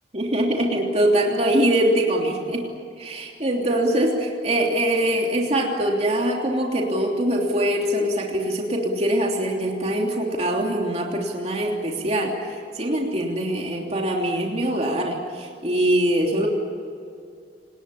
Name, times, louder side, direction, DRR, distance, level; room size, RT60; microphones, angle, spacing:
voice 1, 0.1-2.6 3.0-16.5, right 1 dB, 40° right, 0 dB, 3.1 m, -23 dB
28.0 x 20.0 x 8.6 m, 2.4 s
head